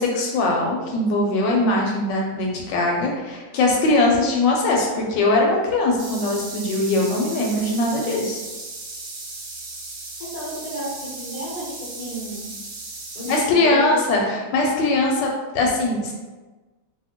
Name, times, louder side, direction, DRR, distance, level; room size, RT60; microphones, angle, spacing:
voice 1, 0.0-8.4 13.2-16.1, left 2 dB, 75° left, -1 dB, 1.2 m, -21 dB
sound 1, 6.0-13.5, right 3 dB, 70° right, 1.3 m, -36 dB
voice 2, 10.2-12.5 13.1-14.0, right 1 dB, 40° left, -6 dB, 0.5 m, -33 dB
2.7 x 2.7 x 2.8 m, 1.2 s
omnidirectional pair, 2.1 m